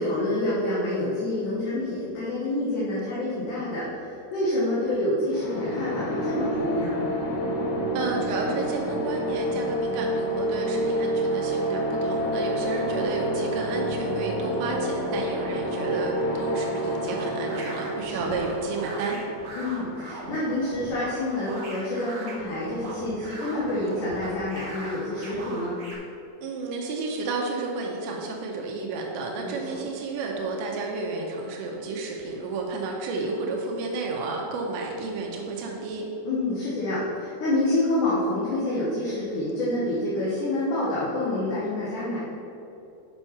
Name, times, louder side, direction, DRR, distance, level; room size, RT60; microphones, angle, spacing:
voice 1, 0.0-7.1 13.8-14.1 18.1-18.3 19.6-25.8 29.4-29.8 36.3-42.2, left 1 dB, 60° left, -7 dB, 2.3 m, -28 dB
sound 1, 5.3-20.0, equal, 85° left, 4.2 m, -28 dB
voice 2, 7.9-19.2 26.4-36.1, right 3 dB, 85° right, -1 dB, 3.2 m, -31 dB
sound 2, 17.0-25.9, right 1 dB, 55° right, 1.9 m, -39 dB
8.6 x 5.6 x 5.7 m, 2.8 s
omnidirectional pair, 5.0 m